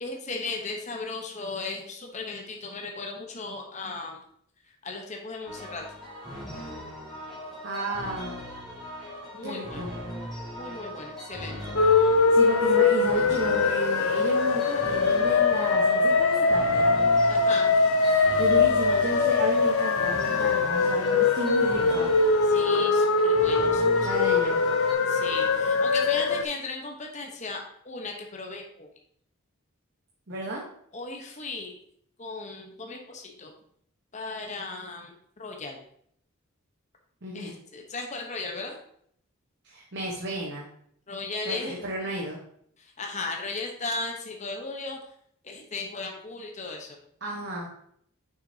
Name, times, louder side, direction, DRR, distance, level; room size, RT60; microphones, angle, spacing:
voice 1, 0.0-4.2 4.8-5.8 9.3-9.8 10.5-11.7 17.3-17.8 22.4-24.3 25.1-28.9 30.9-31.8 32.2-33.5 34.1-35.8 37.3-38.8 41.1-41.8 42.8-45.0 45.4-47.0, left 3 dB, 30° left, 2 dB, 0.9 m, -36 dB
sound 1, 5.5-24.9, equal, ahead, 2.1 m, -39 dB
voice 2, 7.6-8.3 9.4-9.9 12.3-17.0 18.0-22.1 24.0-24.7 30.3-30.6 37.2-37.5 39.6-40.6 41.4-42.4 47.2-47.7, right 1 dB, 50° right, -3 dB, 1.1 m, -32 dB
sound 2, 11.8-26.4, left 4 dB, 70° left, 0.6 m, -22 dB
6.5 x 6.1 x 2.7 m, 0.66 s
head